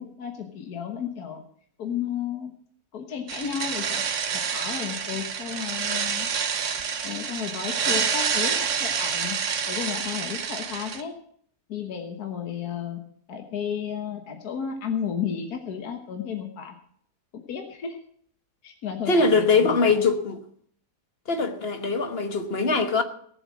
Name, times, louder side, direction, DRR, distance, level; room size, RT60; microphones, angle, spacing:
voice 1, 0.0-1.4 1.8-2.5 2.9-4.0 4.3-6.3 7.0-9.4 9.7-11.1 11.7-13.0 13.3-16.8 17.3-18.0 18.6-20.0, left 8 dB, 70° left, 1.8 m, -33 dB
sound 1, 3.3-11.0, right 6 dB, 55° right, 1.3 m, -28 dB
voice 2, 19.1-20.4 21.3-23.0, left 4 dB, 40° left, 1.4 m, -22 dB
17.5 x 7.5 x 7.4 m
omnidirectional pair, 1.7 m